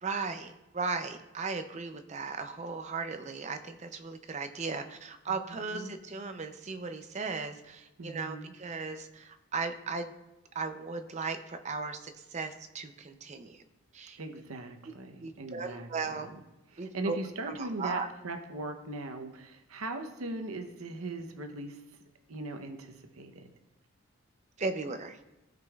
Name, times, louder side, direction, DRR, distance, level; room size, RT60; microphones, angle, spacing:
voice 1, 0.0-10.1 10.5-13.6 13.9-14.2 15.2-16.3 16.8-17.2 17.5-18.1 24.6-25.2, right 4 dB, 30° right, 8 dB, 0.5 m, -36 dB
voice 2, 5.3-6.0 8.0-8.5 14.2-16.4 16.7-21.8 22.3-23.5, right 2 dB, 75° right, 6 dB, 0.8 m, -39 dB
15.5 x 5.2 x 2.3 m, 0.97 s
head